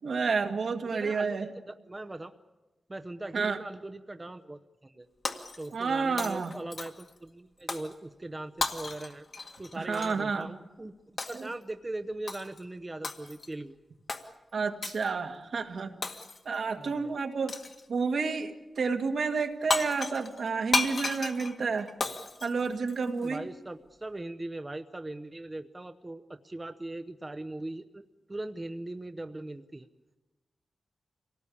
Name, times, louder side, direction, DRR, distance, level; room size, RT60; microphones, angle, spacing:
voice 1, 0.0-1.5 3.3-3.6 5.7-6.5 9.8-10.5 11.3-11.5 14.5-15.9 16.5-17.6 17.9-21.9 22.4-23.4, right 4 dB, 75° right, 4 dB, 1.9 m, -30 dB
voice 2, 0.8-2.3 2.9-5.1 5.6-9.3 9.6-10.9 11.3-13.8 16.8-17.1 23.2-28.0 28.3-29.9, right 2 dB, 20° right, 7 dB, 0.8 m, -40 dB
Shatter, 5.2-5.9 6.2-7.1 7.7-7.9 8.6-10.2 11.2-11.5 12.3-12.6 13.0-13.5 14.1-14.3 14.8-15.1 16.0-16.6 17.5-17.8 19.4-19.5 19.7-23.3, left 3 dB, 50° left, 1.8 m, -34 dB
26.5 x 18.5 x 8.6 m, 1.1 s
wide cardioid pair, 115°, 0 cm